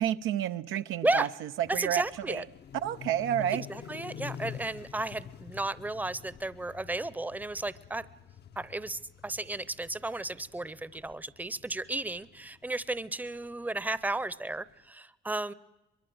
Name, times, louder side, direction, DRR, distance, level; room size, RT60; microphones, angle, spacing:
voice 1, 0.0-2.5 2.7-3.6, right 11 dB, 90° right, 9 dB, 0.8 m, -30 dB
sound 1, 1.6-14.7, left 8 dB, 55° left, 0.8 m, -48 dB
voice 2, 1.7-2.4 3.5-8.0 8.6-15.5, right 2 dB, 10° right, 17 dB, 0.7 m, -33 dB
23.0 x 23.0 x 7.9 m, 1.0 s
cardioid pair, 90°, 20 cm